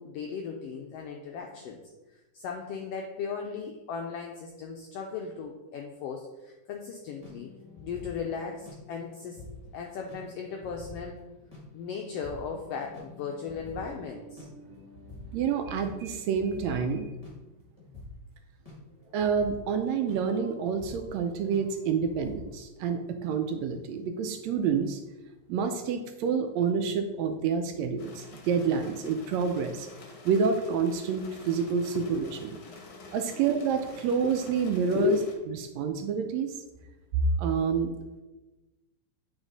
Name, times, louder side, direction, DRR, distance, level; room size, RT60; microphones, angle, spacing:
voice 1, 0.0-1.8 2.3-7.5 7.8-9.4 9.7-11.2 11.7-14.5 31.9-32.0 32.6-32.7 33.3-33.5 34.2-34.3 34.9-35.3, left 6 dB, 90° left, 2 dB, 1.3 m, -36 dB
sound 1, 7.2-17.3 17.8-18.1 18.6-21.1 21.4-21.7 22.0-22.4, left 2 dB, 25° left, 0.8 m, -48 dB
voice 2, 15.3-17.1 19.1-25.0 25.5-29.9 30.2-32.6 33.1-35.2 35.7-36.5 37.4-37.9, right 6 dB, 80° right, 6 dB, 1.6 m, -28 dB
sound 2, 28.0-35.4, left 3 dB, 60° left, 1.4 m, -49 dB
8.8 x 4.0 x 4.0 m, 1.1 s
omnidirectional pair, 3.4 m